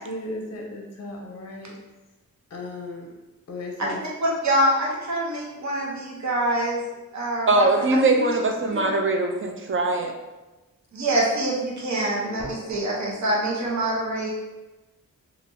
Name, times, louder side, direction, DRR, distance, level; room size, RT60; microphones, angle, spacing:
voice 1, 0.1-1.7 2.5-3.1 3.5-4.0, left 2 dB, 45° left, 1 dB, 0.6 m, -35 dB
voice 2, 4.2-6.8 7.1-7.7 8.1-8.4 8.7-8.9 10.9-14.3, right 1 dB, 55° right, -4 dB, 0.9 m, -25 dB
voice 3, 7.5-10.1, right 2 dB, 35° right, 4 dB, 0.5 m, -21 dB
3.2 x 2.4 x 2.6 m, 1.1 s
cardioid pair, 65°, 35 cm